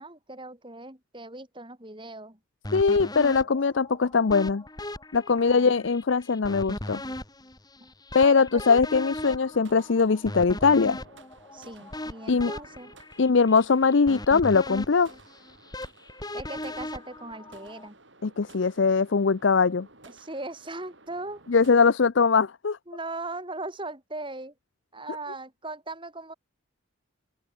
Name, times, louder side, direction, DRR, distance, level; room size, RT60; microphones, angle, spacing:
voice 1, 0.0-2.4 5.3-5.9 8.2-8.7 11.5-12.9 16.3-18.0 20.1-21.4 22.9-24.5 24.9-26.3, right 2 dB, 25° right, 4.6 m, -39 dB
sound 1, 2.6-17.9, left 1 dB, 20° left, 3.6 m, -38 dB
voice 2, 2.7-4.6 5.1-7.0 8.1-11.0 12.3-12.5 13.2-15.1 18.2-19.9 21.5-22.8, left 5 dB, 65° left, 0.6 m, -21 dB
sound 2, 9.2-22.0, right 3 dB, 65° right, 7.7 m, -54 dB
open air
head